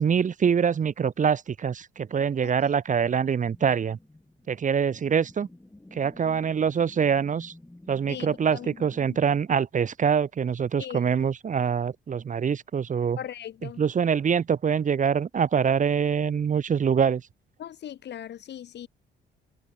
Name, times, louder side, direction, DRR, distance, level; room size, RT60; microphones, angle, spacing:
voice 1, 0.0-4.0 4.5-5.5 5.9-7.5 7.9-13.2 13.6-17.2, right 7 dB, 40° right, 0.9 m, -24 dB
sound 1, 2.8-9.3, left 1 dB, 10° left, 2.0 m, -51 dB
voice 2, 8.1-8.7 10.8-11.0 13.2-13.8 17.6-18.9, left 10 dB, 60° left, 1.1 m, -38 dB
cardioid pair, 90°, 20 cm